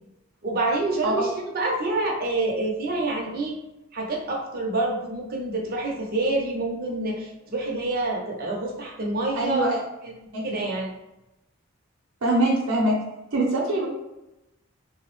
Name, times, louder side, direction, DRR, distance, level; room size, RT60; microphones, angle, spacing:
voice 1, 0.4-3.5 3.9-9.7 10.0-10.1 10.4-10.9, right 2 dB, 45° right, -1 dB, 0.6 m, -27 dB
voice 2, 9.3-9.8 10.3-10.6 12.2-12.9 13.3-13.9, right 1 dB, 85° right, -4 dB, 0.7 m, -23 dB
3.4 x 2.0 x 3.0 m, 0.95 s
head